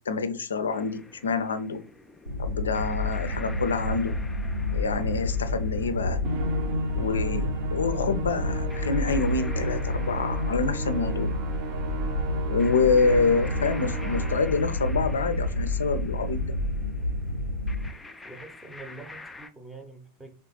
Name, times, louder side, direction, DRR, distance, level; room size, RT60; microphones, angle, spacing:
voice 1, 0.1-1.8 2.4-4.1 4.7-6.2 7.0-11.3 12.5-16.5, left 4 dB, 70° left, 11 dB, 0.5 m, -27 dB
sound 1, 0.7-19.5, left 3 dB, 10° left, 0.4 m, -47 dB
sound 2, 2.3-17.9, left 1 dB, 80° right, 0.5 m, -29 dB
Musical instrument, 6.2-14.7, right 2 dB, 45° right, 0.7 m, -34 dB
voice 2, 18.2-20.3, right 3 dB, 5° right, 5 dB, 0.7 m, -45 dB
3.8 x 3.3 x 3.0 m, 0.34 s
figure-of-eight pair, 90°, 0 cm